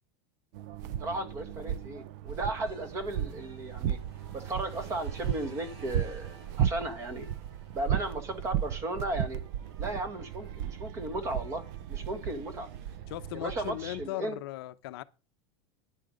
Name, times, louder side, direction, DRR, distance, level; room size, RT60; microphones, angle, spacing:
sound 1, 0.5-14.1, right 10 dB, 40° right, 0.5 m, -35 dB
voice 1, 1.0-4.0 4.3-7.3 7.7-9.4 9.8-11.6 11.9-12.7 13.3-14.4, right 2 dB, 20° right, 1.4 m, -35 dB
sound 2, 2.6-13.0, right 3 dB, 85° right, 7.3 m, -55 dB
voice 2, 13.1-15.0, left 16 dB, 60° left, 0.7 m, -38 dB
10.5 x 9.8 x 5.1 m
supercardioid pair, 180°, 14 cm